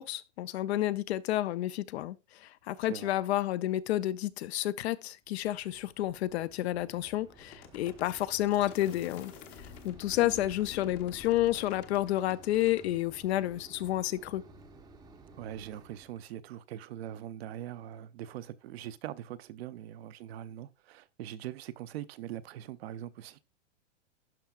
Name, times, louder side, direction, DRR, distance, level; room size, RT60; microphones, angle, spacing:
voice 1, 0.0-9.3 9.8-14.4, left 14 dB, 65° left, 0.5 m, -30 dB
Mechanisms, 5.3-16.2, right 2 dB, 10° right, 0.6 m, -54 dB
sound 1, 7.4-12.9, left 8 dB, 30° left, 0.8 m, -50 dB
voice 2, 10.2-10.5 15.4-23.4, right 12 dB, 60° right, 0.6 m, -42 dB
12.0 x 4.5 x 2.4 m
supercardioid pair, 150°, 36 cm